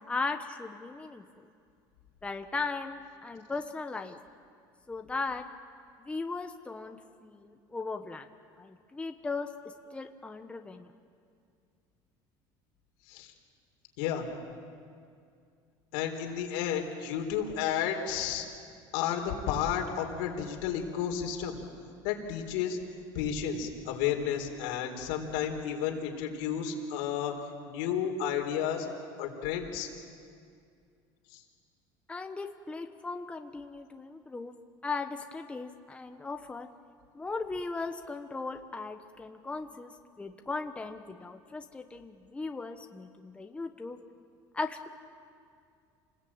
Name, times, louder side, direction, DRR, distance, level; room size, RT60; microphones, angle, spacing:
voice 1, 0.1-1.5 2.2-4.2 4.9-5.5 6.0-7.0 7.2-8.3 8.6-9.5 9.9-10.9 32.1-34.5 34.8-36.7 37.1-39.9 40.2-44.0 44.5-44.9, left 3 dB, 10° left, 5 dB, 1.2 m, -37 dB
voice 2, 14.0-14.3 15.9-18.4 18.9-21.6 22.0-22.8 23.1-27.3 27.6-28.9 29.2-29.9 31.3-31.4, left 8 dB, 90° left, 2 dB, 4.0 m, -32 dB
29.0 x 20.0 x 8.9 m, 2.3 s
cardioid pair, 130°, 10 cm